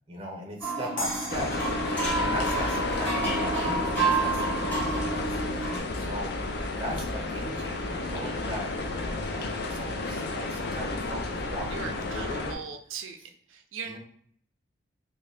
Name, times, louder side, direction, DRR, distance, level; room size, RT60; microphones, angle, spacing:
voice 1, 0.1-1.5 2.2-8.7 9.0-12.5 13.8-14.0, equal, 30° right, 0 dB, 0.6 m, -39 dB
sound 1, 0.6-5.8, right 3 dB, 10° left, 0.7 m, -29 dB
sound 2, 1.0-4.0, left 1 dB, 85° left, 0.8 m, -39 dB
sound 3, 1.3-12.5, left 2 dB, 55° left, 0.4 m, -32 dB
voice 2, 11.7-13.2 13.5-14.0, right 5 dB, 85° right, 4 dB, 0.4 m, -40 dB
2.6 x 2.2 x 3.2 m, 0.62 s
head